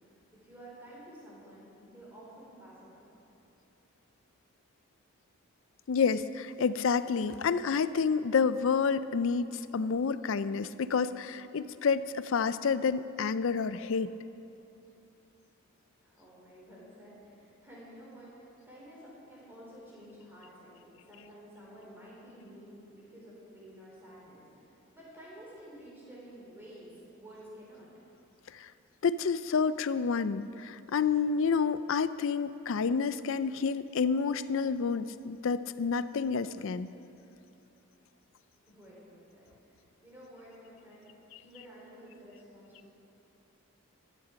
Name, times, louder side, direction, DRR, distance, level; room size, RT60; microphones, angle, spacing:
voice 1, 0.0-3.1 16.0-27.9 38.5-41.1 41.4-42.9, equal, 10° right, -6 dB, 4.0 m, -51 dB
voice 2, 5.9-14.1 28.5-28.7 29.0-36.9, left 5 dB, 60° left, 14 dB, 0.4 m, -29 dB
15.5 x 11.5 x 5.1 m, 2.8 s
head